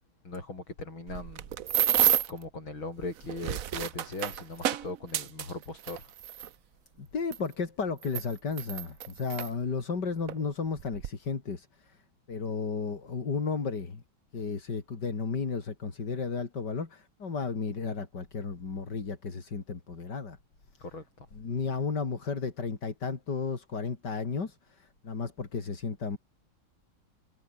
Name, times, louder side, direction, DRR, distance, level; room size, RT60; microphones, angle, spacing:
voice 1, 0.2-1.4 2.3-6.1 20.8-21.3, left 2 dB, 70° left, 7.9 m, -39 dB
sound 1, 1.1-2.4 3.2-6.5 7.3-7.4 8.0-9.5 10.3-10.4 10.8-11.1, right 10 dB, 55° right, 1.0 m, -29 dB
voice 2, 7.0-12.0 12.3-14.0 14.3-20.4 21.3-26.2, left 4 dB, 55° left, 3.5 m, -33 dB
omnidirectional pair, 2.2 m